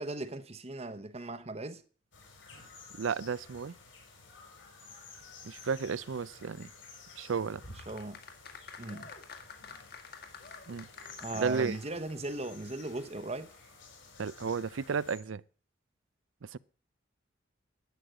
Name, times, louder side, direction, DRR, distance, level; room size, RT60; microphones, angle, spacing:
voice 1, 0.0-1.8 7.7-8.2 8.8-9.1 11.2-13.5, right 2 dB, 30° right, 0.9 m, -38 dB
sound 1, 2.1-15.2, left 4 dB, 70° left, 4.7 m, -52 dB
voice 2, 3.0-3.7 5.4-6.7 7.2-7.6 10.7-10.9 11.3-11.8 14.2-15.4 16.5-16.6, right 5 dB, 75° right, 0.5 m, -33 dB
sound 2, 7.7-12.3 12.5-12.6, left 5 dB, 50° left, 2.0 m, -49 dB
12.0 x 7.9 x 8.0 m
head